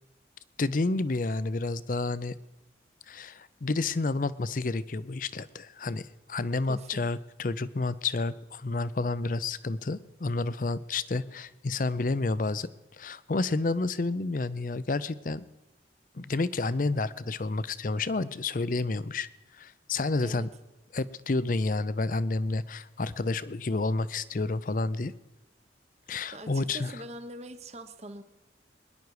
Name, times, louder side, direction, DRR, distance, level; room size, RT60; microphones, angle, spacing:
voice 1, 0.6-2.3 3.1-12.7 13.0-15.4 16.1-19.3 19.6-20.5 20.9-25.1 26.1-26.9, left 3 dB, 45° left, 16 dB, 0.5 m, -30 dB
voice 2, 6.7-7.1 20.2-20.5 26.3-28.2, right 1 dB, 35° right, 9 dB, 0.9 m, -43 dB
22.0 x 10.5 x 4.8 m, 1.0 s
head